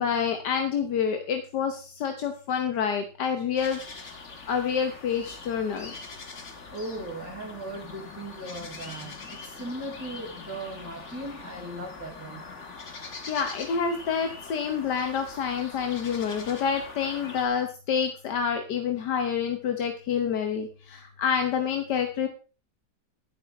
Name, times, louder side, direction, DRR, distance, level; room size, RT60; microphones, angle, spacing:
voice 1, 0.0-3.8 4.5-5.9 13.3-22.3, left 7 dB, 85° left, 6 dB, 1.7 m, -28 dB
sound 1, 3.6-17.5, left 4 dB, 45° left, 1.9 m, -43 dB
voice 2, 6.7-12.5, right 1 dB, 10° right, -3 dB, 2.3 m, -38 dB
11.0 x 9.9 x 4.2 m, 0.35 s
omnidirectional pair, 1.8 m